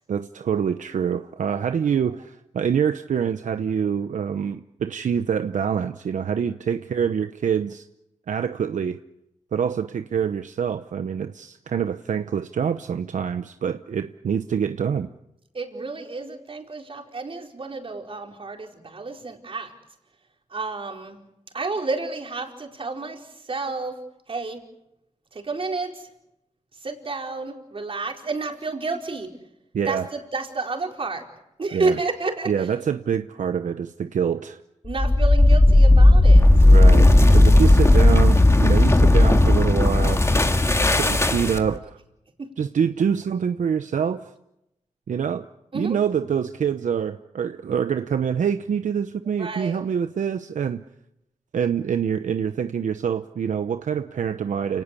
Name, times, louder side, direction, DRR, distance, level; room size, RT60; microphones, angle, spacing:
voice 1, 0.1-7.9 8.3-9.0 9.5-15.1 29.7-30.1 31.7-32.0 32.5-34.6 36.7-40.2 40.9-42.0 42.6-44.3 45.1-45.5 45.7-50.8 51.5-54.8, right 7 dB, 75° right, 9 dB, 0.9 m, -25 dB
voice 2, 15.5-19.7 20.5-21.2 21.5-24.0 24.3-24.6 25.3-26.1 26.8-29.3 29.8-31.2 31.6-32.7 34.8-36.5 42.4-42.5 45.7-46.0 49.2-49.8, right 3 dB, 45° right, 2 dB, 4.5 m, -30 dB
sound 1, 34.9-41.8, left 1 dB, 20° left, 2.0 m, -14 dB
29.5 x 19.0 x 8.4 m, 0.87 s
wide cardioid pair, 105°, 13 cm